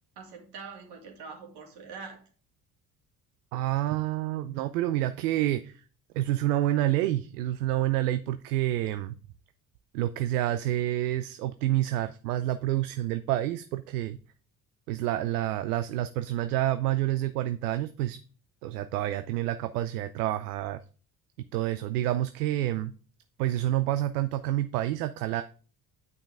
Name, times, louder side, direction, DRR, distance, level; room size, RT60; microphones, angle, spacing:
voice 1, 0.2-2.2, right 5 dB, 60° right, 1 dB, 2.7 m, -44 dB
voice 2, 3.5-5.8 6.1-9.2 9.9-14.2 14.9-18.2 18.6-20.8 21.5-22.9 23.4-25.4, right 14 dB, 80° right, 10 dB, 0.5 m, -28 dB
9.3 x 5.6 x 3.6 m, 0.39 s
hypercardioid pair, 50°, 45 cm